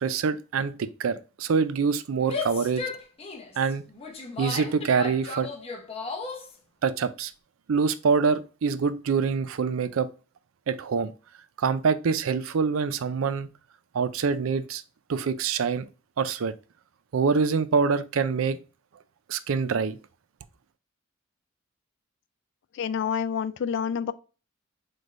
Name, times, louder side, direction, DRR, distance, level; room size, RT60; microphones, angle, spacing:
voice 1, 0.0-2.8 3.6-3.8 4.4-5.5 6.8-7.3 7.7-10.1 10.7-11.1 11.6-13.5 13.9-14.8 15.1-15.9 16.2-16.5 17.1-18.6 19.3-20.0, right 5 dB, 75° right, 0.4 m, -25 dB
Female speech woman speaking / Yell, 2.2-6.5, left 3 dB, 30° left, 0.8 m, -35 dB
voice 2, 22.8-24.1, left 7 dB, 60° left, 0.3 m, -28 dB
5.9 x 3.3 x 2.4 m
head